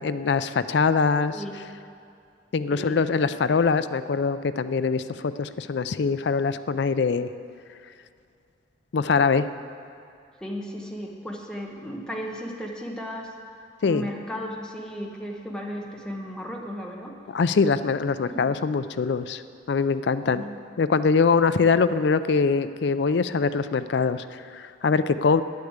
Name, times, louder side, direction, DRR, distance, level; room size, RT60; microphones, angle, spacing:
voice 1, 0.0-1.4 2.5-7.3 8.9-9.5 13.8-14.1 17.3-19.4 19.7-20.4 20.8-25.4, left 5 dB, 65° left, 13 dB, 0.4 m, -23 dB
voice 2, 1.3-1.7 2.7-3.0 10.4-13.3 13.8-17.1 18.3-18.5 20.4-20.5, equal, 5° left, -1 dB, 1.0 m, -35 dB
9.7 x 8.3 x 8.0 m, 2.5 s
head